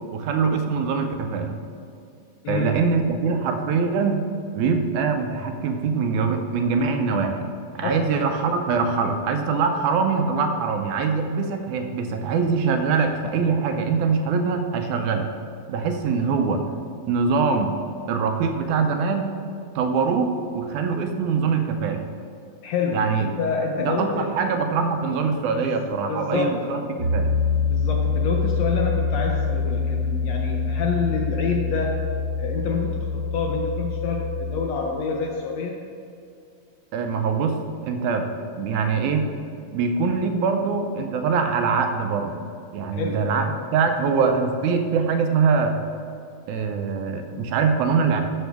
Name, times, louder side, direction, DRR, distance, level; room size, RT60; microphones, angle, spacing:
voice 1, 0.1-1.6 2.5-4.2 4.5-7.5 7.8-15.3 15.7-16.6 17.1-17.8 18.1-19.3 19.8-22.0 22.9-23.3 23.8-27.3 36.9-39.3 39.7-42.4 42.7-45.8 46.5-48.2, right 5 dB, 80° right, 5 dB, 2.0 m, -23 dB
voice 2, 2.4-2.8 7.8-8.1 22.6-24.3 25.5-26.6 27.6-32.1 32.4-35.8 42.9-43.3, left 4 dB, 75° left, 1 dB, 1.6 m, -27 dB
Piano, 27.0-34.7, left 4 dB, 55° left, 1.4 m, -25 dB
12.0 x 6.8 x 3.5 m, 2.5 s
omnidirectional pair, 3.6 m